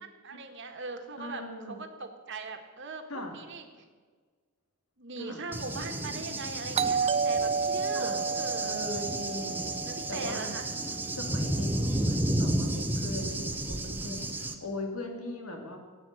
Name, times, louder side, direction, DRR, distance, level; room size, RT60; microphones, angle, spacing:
voice 1, 0.0-1.4 1.7-3.6 5.0-8.7 9.3-9.4 9.9-10.7 13.3-13.4 14.5-14.6, right 3 dB, 55° right, 5 dB, 1.7 m, -40 dB
voice 2, 1.2-1.8 3.1-3.4 5.2-5.4 7.9-8.2 8.6-10.6 11.1-15.8, left 1 dB, 75° left, 2 dB, 2.8 m, -39 dB
Cricket / Thunder, 5.5-14.5, right 1 dB, 10° right, 1.0 m, -32 dB
Doorbell, 6.7-11.3, right 5 dB, 30° right, 0.3 m, -31 dB
16.0 x 9.0 x 7.9 m, 1.5 s
head